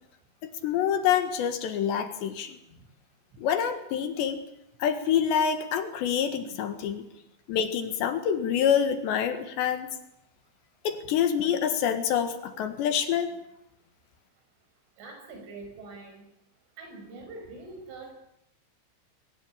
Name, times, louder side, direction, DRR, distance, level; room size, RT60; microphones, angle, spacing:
voice 1, 0.6-2.6 3.4-4.4 4.8-7.0 7.5-9.9 10.9-13.3, left 8 dB, 70° left, 8 dB, 3.5 m, -26 dB
voice 2, 15.0-16.1 16.8-18.1, right 3 dB, 75° right, 4 dB, 8.0 m, -43 dB
23.0 x 19.0 x 8.7 m, 0.81 s
omnidirectional pair, 5.7 m